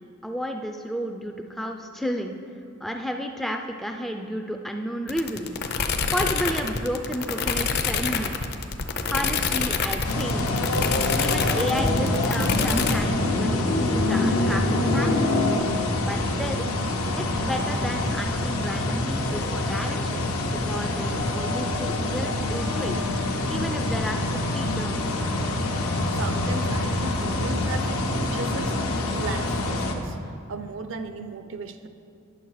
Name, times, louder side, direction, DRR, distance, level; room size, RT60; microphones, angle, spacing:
voice 1, 0.2-2.4 2.8-5.5 6.1-8.4 9.0-10.5 11.1-15.3 16.0-16.6 17.2-23.0 23.5-25.2, equal, ahead, 4 dB, 0.3 m, -32 dB
sound 1, 5.1-13.0, left 5 dB, 50° left, 0.6 m, -26 dB
sound 2, 10.0-29.9, left 2 dB, 90° left, 0.9 m, -25 dB
Wind instrument woodwind instrument, 22.4-26.9, left 5 dB, 90° right, 2.3 m, -41 dB
voice 2, 26.1-28.8 29.1-30.2 30.5-31.9, right 3 dB, 60° right, 9 dB, 0.5 m, -36 dB
10.0 x 6.3 x 4.6 m, 2.4 s
head